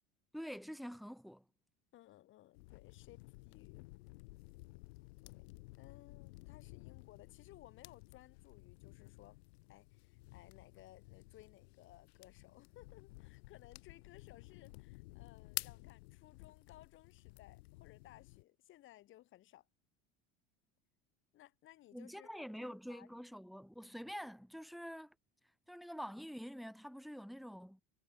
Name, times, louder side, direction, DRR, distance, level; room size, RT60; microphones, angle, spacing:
voice 1, 0.3-1.4 21.9-25.2 25.7-27.8, equal, ahead, 5.3 m, -47 dB
voice 2, 1.9-3.9 5.2-5.5 5.8-9.4 9.7-19.7 21.3-23.2, left 15 dB, 40° left, 3.7 m, -61 dB
sound 1, 2.6-18.4, left 24 dB, 75° left, 4.7 m, -52 dB
cardioid pair, 160°, 31 cm